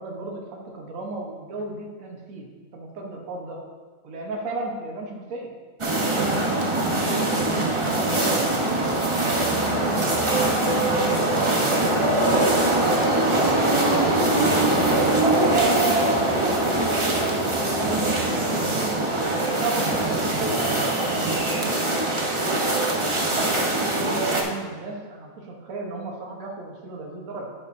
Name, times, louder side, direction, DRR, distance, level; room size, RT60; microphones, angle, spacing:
voice 1, 0.0-3.6 4.0-5.5 6.0-10.0 10.5-12.6 13.1-17.4 17.9-19.0 19.3-22.9 23.3-27.5, right 2 dB, 50° right, -1 dB, 1.5 m, -36 dB
sound 1, 5.8-24.4, right 2 dB, 25° right, 0.7 m, -22 dB
sound 2, 11.8-21.3, right 1 dB, 20° left, 2.1 m, -40 dB
11.5 x 8.3 x 2.7 m, 1.5 s
omnidirectional pair, 2.0 m